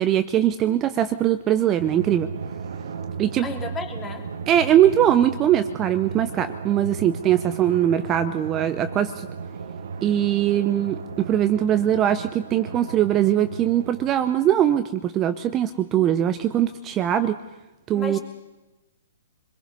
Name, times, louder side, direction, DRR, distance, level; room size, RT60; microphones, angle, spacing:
voice 1, 0.0-2.3 3.2-3.5 4.5-9.3 10.0-17.4 17.9-18.2, right 11 dB, 25° right, 10 dB, 0.8 m, -21 dB
Drum, 1.8-14.9, right 5 dB, 65° right, 1.5 m, -35 dB
voice 2, 3.4-4.3 16.2-16.3 17.9-18.2, left 3 dB, 15° left, 2 dB, 3.1 m, -33 dB
25.5 x 22.0 x 5.4 m, 1.0 s
figure-of-eight pair, 125°, 0 cm